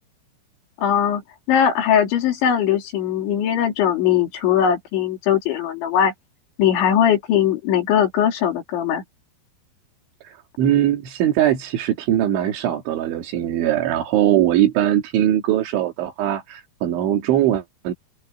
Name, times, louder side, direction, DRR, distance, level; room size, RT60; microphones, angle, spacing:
voice 1, 0.8-1.2 1.5-6.1 6.6-9.0, left 9 dB, 80° left, 5.4 m, -20 dB
voice 2, 10.2-17.9, right 11 dB, 85° right, 4.6 m, -21 dB
open air
omnidirectional pair, 5.2 m